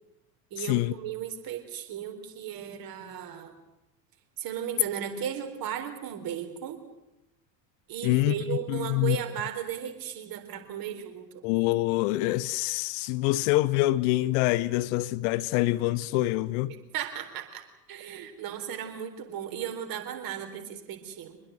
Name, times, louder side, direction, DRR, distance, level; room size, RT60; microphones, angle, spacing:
voice 1, 0.5-3.5 4.4-6.8 7.9-11.3 16.9-17.6 17.9-21.4, right 9 dB, 45° right, 4.1 m, -35 dB
voice 2, 8.0-8.3 8.7-9.2 11.4-16.7, left 18 dB, 50° left, 1.0 m, -25 dB
24.0 x 21.0 x 7.8 m
figure-of-eight pair, 75°, 49 cm